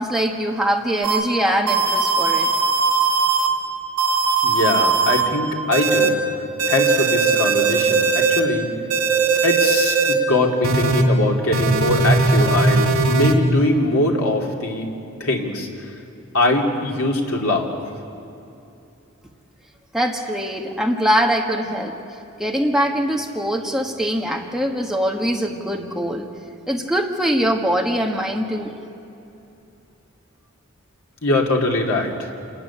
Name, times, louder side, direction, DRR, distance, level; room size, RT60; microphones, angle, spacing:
voice 1, 0.0-2.5 19.9-21.9 22.4-26.3 26.7-28.7, equal, ahead, 0 dB, 1.5 m, -22 dB
sound 1, 1.0-1.2 1.7-3.5 4.0-5.2 5.7-6.1 6.6-8.4 8.9-10.1 10.6-11.0 11.5-13.3, right 4 dB, 90° right, 2.7 m, -19 dB
voice 2, 4.4-6.2 6.6-8.7 9.4-14.9 15.2-15.7 16.3-17.7 31.2-32.3, left 2 dB, 75° left, 0 dB, 3.0 m, -22 dB
27.5 x 13.5 x 10.0 m, 2.9 s
head